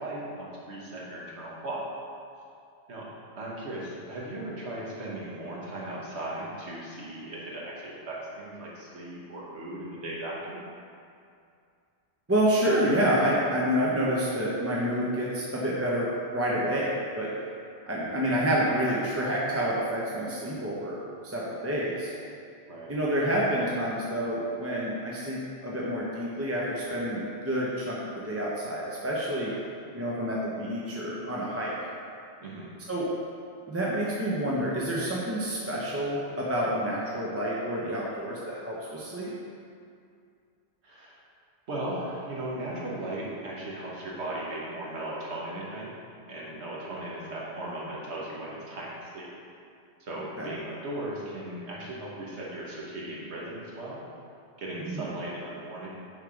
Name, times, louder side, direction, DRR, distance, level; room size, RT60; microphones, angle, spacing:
voice 1, 0.0-1.8 2.9-3.0 3.4-10.6 18.0-18.3 22.7-22.9 32.4-32.7 40.8-41.2 41.7-45.9 46.3-49.3 50.0-54.0 54.6-55.9, right 1 dB, 85° right, -5 dB, 1.5 m, -37 dB
voice 2, 12.3-17.3 17.9-21.0 21.2-22.1 22.9-28.0 28.2-29.5 29.9-31.7 32.9-33.1 33.7-39.3 50.4-50.5 54.8-55.0, equal, 15° right, -6 dB, 0.5 m, -28 dB
6.2 x 3.6 x 4.9 m, 2.4 s
omnidirectional pair, 1.1 m